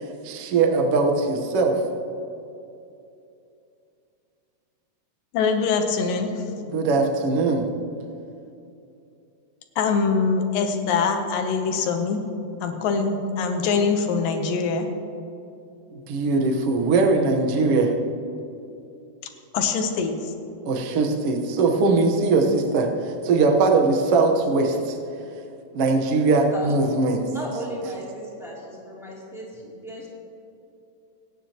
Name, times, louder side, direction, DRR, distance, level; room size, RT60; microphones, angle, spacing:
voice 1, 0.2-1.8 6.7-7.7 15.9-17.9 20.6-25.0 25.7-27.2, right 3 dB, 80° right, 2 dB, 1.3 m, -21 dB
voice 2, 5.3-6.4 9.8-12.2 12.6-14.9 19.5-20.3, left 5 dB, 70° left, 5 dB, 2.5 m, -23 dB
voice 3, 27.3-30.1, equal, ahead, -6 dB, 2.1 m, -35 dB
25.0 x 9.2 x 2.9 m, 2.7 s
omnidirectional pair, 4.4 m